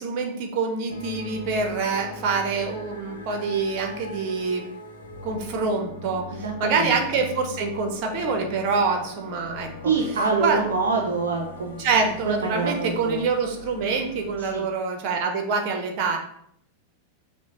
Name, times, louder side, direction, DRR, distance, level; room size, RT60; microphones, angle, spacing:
voice 1, 0.0-4.7 5.2-6.3 6.6-9.9 10.4-10.6 11.8-16.2, right 4 dB, 40° right, 4 dB, 0.9 m, -25 dB
sound 1, 0.9-14.6, left 2 dB, 70° left, 0.9 m, -41 dB
voice 2, 6.3-7.0 9.8-11.9 12.3-13.3 14.4-14.6, right 4 dB, 70° right, 1 dB, 0.6 m, -26 dB
6.0 x 2.2 x 3.9 m, 0.68 s
figure-of-eight pair, 90°, 0 cm